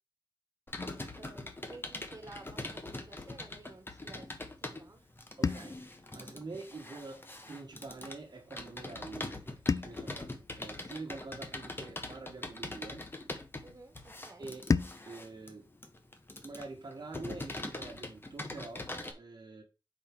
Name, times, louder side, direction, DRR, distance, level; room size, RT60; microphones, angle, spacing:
Computer keyboard, 0.7-19.1, left 2 dB, 25° left, 1.1 m, -43 dB
voice 1, 1.1-5.0 10.0-10.3 13.6-14.5 18.9-19.2, right 3 dB, 40° right, 1.6 m, -53 dB
sound 1, 5.4-7.8 9.7-12.2 14.7-17.2, left 4 dB, 45° left, 0.3 m, -38 dB
voice 2, 5.4-10.3 10.6-13.1 14.4-14.7 15.0-15.7 16.4-18.9 19.2-19.6, right 3 dB, 55° right, 1.3 m, -46 dB
4.7 x 4.4 x 5.9 m
wide cardioid pair, 90°, 8 cm